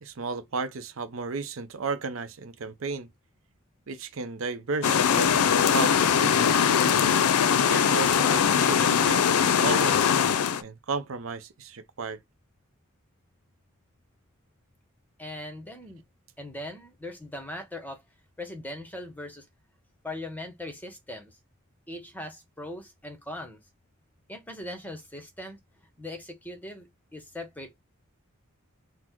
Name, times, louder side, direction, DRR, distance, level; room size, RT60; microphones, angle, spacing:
voice 1, 0.0-3.1 3.9-5.4 5.7-6.5 7.5-10.0 10.6-12.2, right 4 dB, 65° right, 0.6 m, -33 dB
sound 1, 4.8-10.6, left 7 dB, 90° left, 0.5 m, -21 dB
voice 2, 15.2-16.0 16.4-18.0 18.4-19.4 20.0-21.4 21.9-23.6 24.3-25.6 26.0-27.8, left 1 dB, 10° left, 0.9 m, -40 dB
4.2 x 2.1 x 4.4 m
head